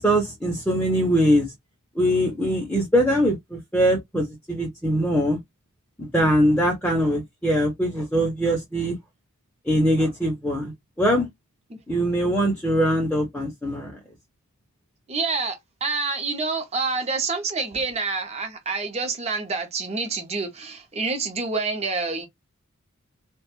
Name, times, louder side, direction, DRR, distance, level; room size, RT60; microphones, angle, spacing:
voice 1, 0.0-1.5 2.0-5.4 6.0-9.0 9.7-10.7 11.0-11.3 11.9-14.0, equal, 5° left, 0.6 m, -22 dB
voice 2, 15.1-22.3, right 4 dB, 30° right, 0.7 m, -27 dB
2.4 x 2.2 x 2.9 m
head